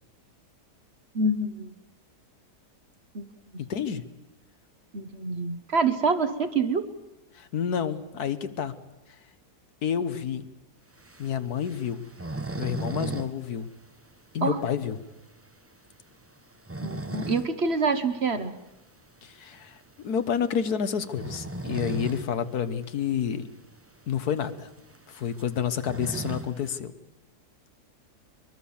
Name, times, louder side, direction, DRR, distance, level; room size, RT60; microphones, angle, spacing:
voice 1, 1.1-1.7 3.1-3.3 4.9-6.9 14.4-14.6 16.8-18.5, right 3 dB, 45° right, 10 dB, 1.1 m, -26 dB
voice 2, 3.6-4.0 7.3-8.7 9.8-10.5 11.2-12.0 12.5-13.7 14.3-15.0 19.2-23.5 24.1-24.7 25.1-26.9, left 8 dB, 70° left, 11 dB, 1.6 m, -29 dB
sound 1, 11.0-13.3 13.6-13.7 14.1-14.2 14.7-14.8 16.4-17.5 17.9-18.1 19.6-19.8 21.0-22.3 22.7-22.8 23.0-23.1 23.8-23.9 24.2-26.8, right 2 dB, 15° right, 0.4 m, -36 dB
23.5 x 21.5 x 7.1 m, 0.98 s
omnidirectional pair, 1.7 m